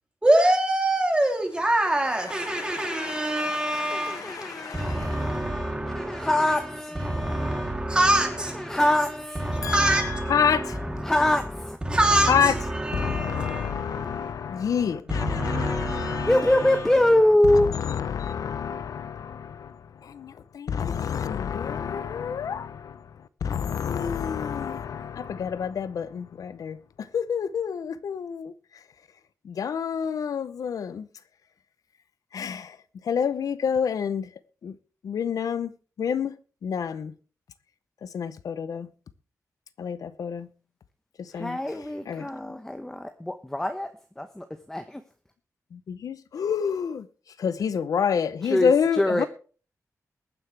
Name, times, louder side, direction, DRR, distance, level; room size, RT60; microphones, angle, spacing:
voice 1, 0.2-6.5 6.9-8.8 9.4-11.1 11.8-14.6 15.1-16.8, right 1 dB, 15° right, 3.1 m, -26 dB
voice 2, 2.3-5.4 9.6-10.8 12.3-12.5 12.9-16.8 17.5-28.8 29.4-31.1 32.3-32.8 33.0-34.3 34.6-34.8 35.0-35.7 36.0-36.4 36.6-37.2 38.0-38.9 39.8-40.5 41.2-41.6 42.1-42.3 45.7-47.1 47.4-49.3, left 7 dB, 85° left, 0.7 m, -29 dB
voice 3, 3.9-7.8 8.2-10.1 10.7-11.8 16.3-17.7 41.3-45.0 48.4-49.3, left 1 dB, 10° left, 0.9 m, -25 dB
22.0 x 9.7 x 3.4 m
wide cardioid pair, 125°, 6 cm